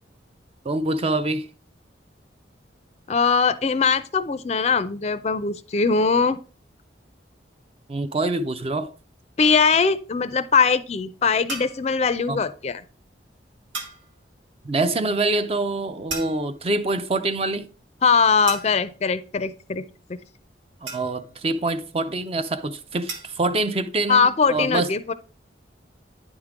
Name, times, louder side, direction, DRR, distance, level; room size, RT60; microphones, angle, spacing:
voice 1, 0.6-1.5 7.9-8.9 12.3-12.4 14.6-17.7 20.8-24.9, right 2 dB, 30° right, 0.4 m, -25 dB
voice 2, 3.1-6.4 9.4-12.8 18.0-19.8 24.1-25.1, left 5 dB, 35° left, 0.4 m, -21 dB
sound 1, 11.5-11.9 13.7-14.1 16.1-16.7 18.5-19.0 20.9-21.4 23.1-23.4, right 3 dB, 90° right, 1.7 m, -35 dB
9.5 x 3.6 x 4.7 m
head